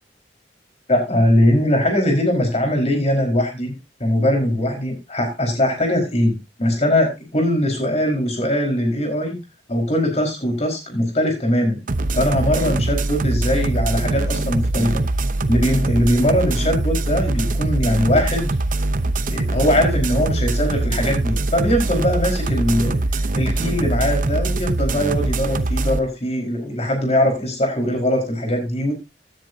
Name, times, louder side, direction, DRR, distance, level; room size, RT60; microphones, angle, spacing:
voice 1, 0.9-3.7 4.0-9.4 9.7-11.8 12.1-15.0 15.5-18.5 19.3-23.0 23.3-28.9, left 1 dB, 35° left, 2 dB, 4.7 m, -21 dB
sound 1, 11.9-26.0, right 2 dB, 50° right, 0.8 m, -22 dB
16.0 x 10.5 x 2.8 m, 0.25 s
head